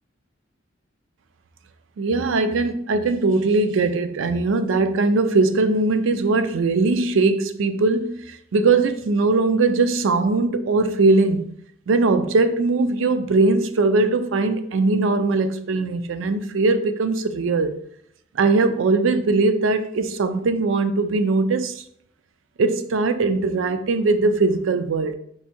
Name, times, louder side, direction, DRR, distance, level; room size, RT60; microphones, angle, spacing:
voice 1, 2.0-11.4 11.9-17.8 18.4-21.8 22.6-25.1, right 3 dB, 75° right, 0.4 m, -20 dB
4.6 x 2.6 x 4.2 m
head